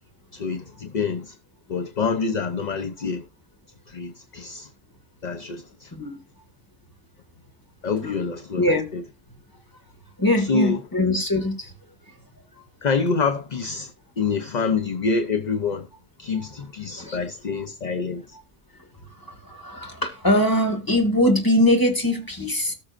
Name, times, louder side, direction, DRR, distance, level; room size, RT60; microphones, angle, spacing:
voice 1, 0.3-1.4 1.7-3.3 3.9-4.7 5.2-5.9 7.8-9.0 10.4-10.8 12.8-15.9 16.2-18.4, left 4 dB, 45° left, 0.8 m, -26 dB
voice 2, 8.6-8.9 10.2-11.7 17.0-17.2 19.3-22.7, left 1 dB, 20° left, 1.9 m, -22 dB
18.5 x 6.2 x 2.5 m
omnidirectional pair, 1.2 m